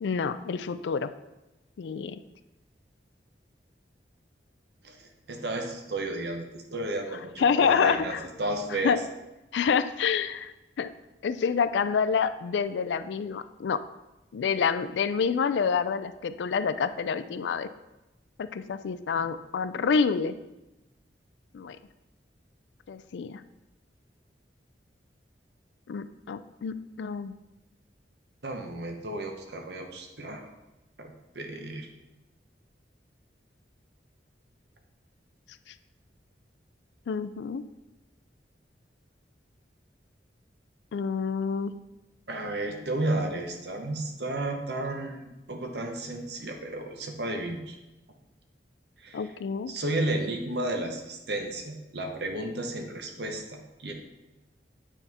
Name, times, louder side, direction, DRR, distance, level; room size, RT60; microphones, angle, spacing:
voice 1, 0.0-1.1 1.8-2.2 7.4-8.2 8.8-9.0 9.5-10.9 11.2-13.8 14.3-17.7 18.4-20.4 21.5-21.8 22.9-23.4 25.9-27.3 37.1-37.6 40.9-41.7 49.1-49.7, left 6 dB, 75° left, 12 dB, 0.4 m, -27 dB
voice 2, 4.8-9.0 28.4-30.5 31.0-31.9 42.3-47.8 49.0-49.2 49.7-53.9, right 2 dB, 65° right, 3 dB, 0.9 m, -33 dB
9.0 x 4.2 x 3.5 m, 1.0 s
head